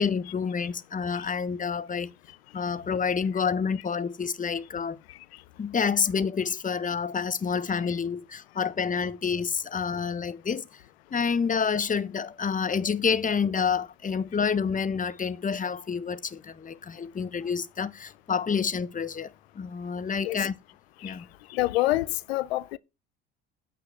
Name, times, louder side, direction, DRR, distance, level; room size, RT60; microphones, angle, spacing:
voice 1, 0.0-2.1 2.5-5.0 5.6-10.8 11.1-20.5 21.0-21.2, left 6 dB, 25° left, 1.3 m, -28 dB
voice 2, 21.5-22.8, left 17 dB, 75° left, 0.8 m, -26 dB
9.5 x 8.1 x 6.2 m
hypercardioid pair, 60°, 31 cm